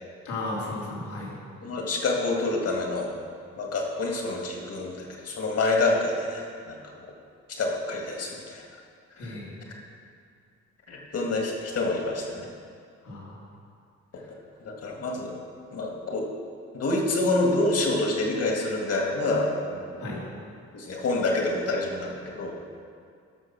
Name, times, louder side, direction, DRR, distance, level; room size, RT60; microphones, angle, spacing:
voice 1, 0.2-1.3 9.2-9.6 13.0-13.3 20.0-20.2, left 2 dB, 85° left, -6 dB, 3.2 m, -34 dB
voice 2, 1.6-3.1 3.6-6.9 7.5-8.6 9.2-9.3 10.9-12.5 14.6-15.3 15.7-16.2 16.7-20.0 20.7-22.6, left 2 dB, 55° left, 0 dB, 2.2 m, -27 dB
13.0 x 5.8 x 6.1 m, 2.3 s
cardioid pair, 75°, 29 cm